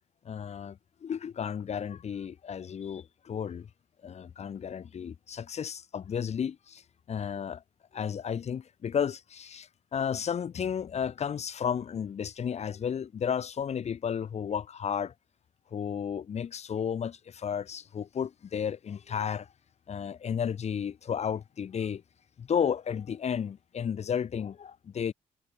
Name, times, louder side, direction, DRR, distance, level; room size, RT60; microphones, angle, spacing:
voice 1, 0.2-3.7 4.0-6.8 7.1-7.6 7.9-15.1 15.7-19.5 19.9-22.0 22.4-25.1, left 7 dB, 50° left, 1.7 m, -33 dB
cardioid pair, 80°, 14 cm